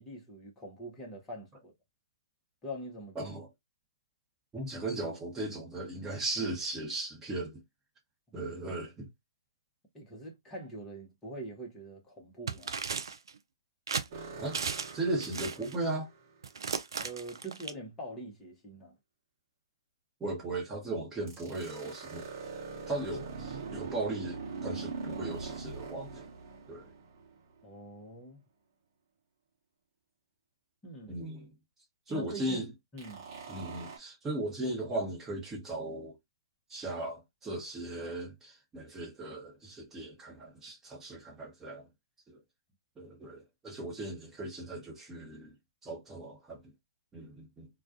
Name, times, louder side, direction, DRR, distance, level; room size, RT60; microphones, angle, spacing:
voice 1, 0.0-1.7 2.6-3.3 8.3-8.5 9.9-12.8 17.0-18.9 27.6-28.4 30.8-31.3 32.1-32.6 32.9-33.3, right 1 dB, 10° left, 0.8 m, -44 dB
voice 2, 3.1-3.5 4.5-7.6 8.3-9.1 14.4-14.6 14.9-16.1 20.2-22.3 22.9-26.3 26.7-26.9 31.1-31.5 32.1-32.7 33.5-36.1 36.7-41.9 42.3-42.4 43.0-45.5 45.8-46.7 47.1-47.7, right 2 dB, 10° right, 1.0 m, -37 dB
sound 1, 12.5-13.3 13.9-14.1 14.5-15.0 15.2-15.7 16.4-17.7, right 5 dB, 65° right, 0.4 m, -35 dB
sound 2, 14.1-16.2 21.3-27.6 33.0-34.0, right 4 dB, 40° right, 0.9 m, -42 dB
2.3 x 2.2 x 2.5 m
figure-of-eight pair, 135°, 3 cm